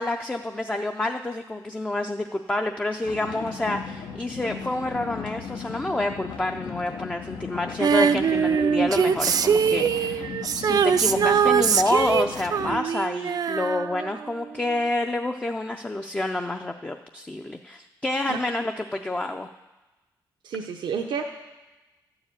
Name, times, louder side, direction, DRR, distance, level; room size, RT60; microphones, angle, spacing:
voice 1, 0.0-19.5, left 2 dB, 15° left, 4 dB, 0.4 m, -28 dB
sound 1, 3.0-12.8, left 6 dB, 80° left, 0.8 m, -37 dB
Female singing, 7.8-14.4 14.7-14.8, right 7 dB, 55° right, 0.4 m, -22 dB
voice 2, 20.4-21.3, right 6 dB, 80° right, 3 dB, 0.7 m, -30 dB
12.5 x 4.8 x 8.7 m, 1.1 s
wide cardioid pair, 120°, 8 cm